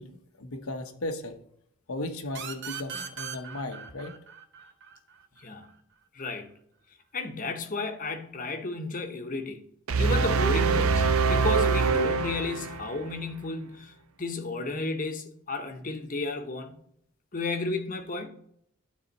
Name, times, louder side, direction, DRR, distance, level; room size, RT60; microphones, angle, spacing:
voice 1, 0.0-1.4 1.9-4.1, left 1 dB, 85° left, 1.0 m, -36 dB
sound 1, 2.3-5.7, right 7 dB, 55° right, 0.9 m, -40 dB
voice 2, 5.4-5.7 6.1-6.5 7.1-9.6 10.0-16.8 17.3-18.3, left 3 dB, 40° left, 0.9 m, -33 dB
sound 2, 9.9-13.1, right 5 dB, 85° right, 0.6 m, -24 dB
12.0 x 4.2 x 4.1 m
head